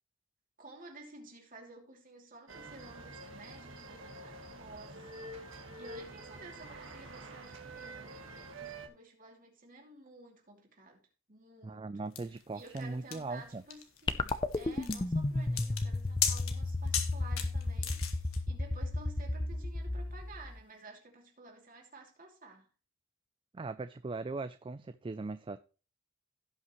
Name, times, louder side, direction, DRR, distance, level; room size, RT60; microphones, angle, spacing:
voice 1, 0.6-11.0 11.3-12.1 12.5-22.7, right 2 dB, 40° right, 2.7 m, -53 dB
sound 1, 2.5-8.9, right 2 dB, 70° right, 1.7 m, -47 dB
voice 2, 11.6-13.6 23.5-25.6, right 3 dB, 25° right, 0.3 m, -39 dB
sound 2, 12.2-18.4, left 9 dB, 90° left, 1.5 m, -37 dB
sound 3, 14.1-20.6, left 2 dB, 25° left, 0.5 m, -33 dB
16.5 x 5.7 x 3.1 m
head